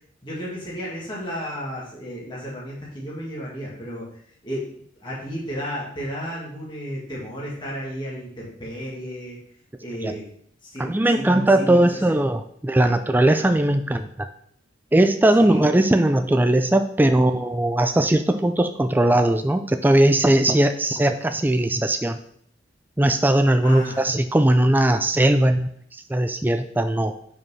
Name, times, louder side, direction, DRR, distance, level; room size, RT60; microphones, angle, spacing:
voice 1, 0.2-4.1 4.4-9.4 9.8-10.2 10.6-12.2 15.4-15.7 23.6-24.0, equal, 25° left, -6 dB, 2.0 m, -33 dB
voice 2, 10.8-14.3 14.9-22.2 23.0-25.7 26.1-27.1, right 1 dB, 10° right, 8 dB, 0.3 m, -19 dB
5.3 x 4.7 x 5.5 m, 0.65 s
head